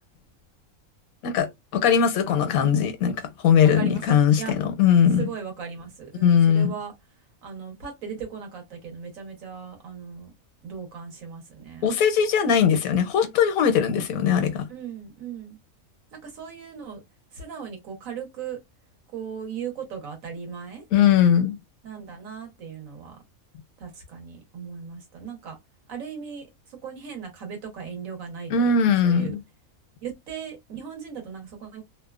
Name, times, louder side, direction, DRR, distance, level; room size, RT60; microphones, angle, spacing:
voice 1, 1.7-5.2 6.2-6.7 11.8-14.7 20.9-21.6 28.5-29.4, left 7 dB, 80° left, 1.0 m, -20 dB
voice 2, 3.6-4.6 5.2-6.9 7.4-10.3 10.6-11.9 14.7-15.6 16.2-17.0 17.3-18.6 19.1-20.8 21.8-23.2 23.8-25.6 25.9-26.5 26.8-28.7 29.0-29.3 30.0-31.8, right 7 dB, 70° right, 1.3 m, -37 dB
2.8 x 2.1 x 2.3 m
omnidirectional pair, 1.5 m